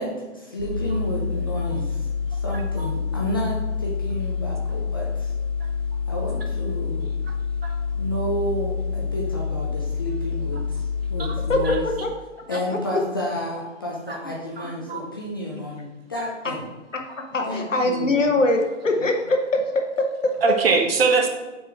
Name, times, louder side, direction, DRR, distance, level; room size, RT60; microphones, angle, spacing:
voice 1, 0.0-5.3 6.1-7.2 7.9-11.9 12.5-16.7 17.4-18.4, equal, 20° left, -4 dB, 0.5 m, -31 dB
sound 1, 0.6-11.7, left 5 dB, 80° right, 1.9 m, -27 dB
voice 2, 11.5-12.1 12.7-12.8 17.3-19.6 20.0-20.3, left 2 dB, 75° left, 2 dB, 1.0 m, -22 dB
voice 3, 14.6-15.0 20.4-21.3, right 4 dB, 50° right, 4 dB, 1.1 m, -21 dB
6.3 x 4.3 x 4.6 m, 1.2 s
figure-of-eight pair, 135°, 38 cm